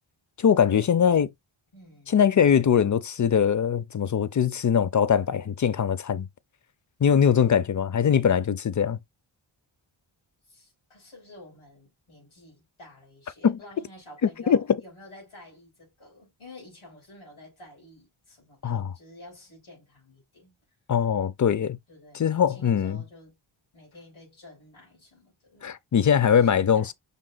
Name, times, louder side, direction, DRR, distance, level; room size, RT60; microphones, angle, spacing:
voice 1, 0.4-1.3 2.1-6.3 7.0-9.0 13.4-13.6 14.2-14.6 18.6-18.9 20.9-21.8 22.1-23.0 25.6-26.9, left 7 dB, 40° left, 0.6 m, -22 dB
voice 2, 1.7-2.3 10.4-20.6 21.9-23.4 23.7-25.7 26.4-26.9, left 1 dB, 90° left, 3.7 m, -50 dB
5.3 x 2.3 x 3.8 m
wide cardioid pair, 80°, 47 cm